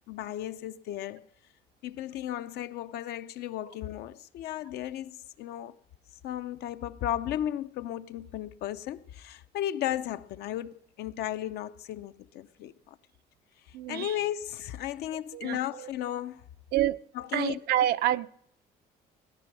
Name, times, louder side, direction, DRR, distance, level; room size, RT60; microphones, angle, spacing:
voice 1, 0.1-1.3 1.8-5.8 6.2-13.0 13.9-16.4 17.1-17.6, left 12 dB, 75° left, 0.7 m, -35 dB
voice 2, 13.7-14.1 15.1-15.9 16.7-17.0 17.3-18.3, right 13 dB, 70° right, 0.5 m, -28 dB
18.0 x 10.5 x 6.1 m
cardioid pair, 110°, 17 cm